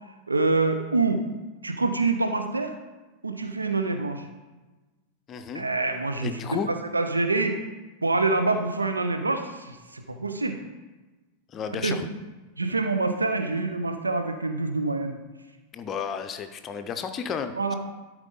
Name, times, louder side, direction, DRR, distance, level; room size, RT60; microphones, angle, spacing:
voice 1, 0.3-1.2 1.6-2.7 3.2-4.3 5.5-6.3 6.6-7.6 8.0-10.6 11.7-11.9 12.6-15.2 17.5-17.7, right 3 dB, 80° right, 7 dB, 0.6 m, -26 dB
voice 2, 5.3-5.6 6.2-6.7 11.5-12.1 15.7-17.7, left 6 dB, 30° left, 8 dB, 0.6 m, -32 dB
12.5 x 4.7 x 3.9 m, 1.2 s
figure-of-eight pair, 90°, 0 cm